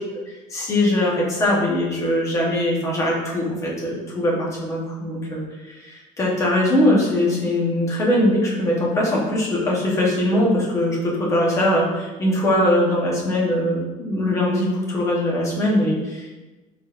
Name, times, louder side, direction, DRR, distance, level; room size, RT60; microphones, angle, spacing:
voice 1, 0.5-16.4, left 1 dB, 20° left, -3 dB, 0.8 m, -21 dB
4.2 x 3.3 x 2.4 m, 1.2 s
cardioid pair, 165°, 14 cm